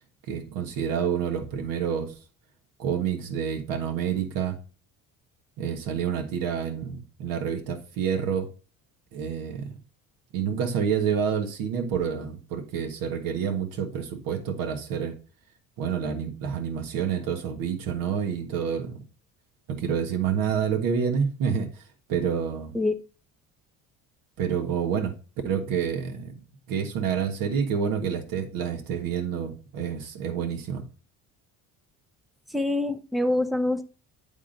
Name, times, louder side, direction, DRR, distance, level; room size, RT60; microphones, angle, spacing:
voice 1, 0.3-2.1 2.8-4.6 5.6-8.5 9.1-9.7 10.3-15.1 15.8-19.0 19.7-21.7 22.1-22.7 24.4-25.1 25.4-26.4 26.7-30.8, right 7 dB, 80° right, 1.4 m, -28 dB
voice 2, 32.5-33.8, left 2 dB, ahead, 0.5 m, -25 dB
10.5 x 3.6 x 3.9 m
cardioid pair, 135°, 34 cm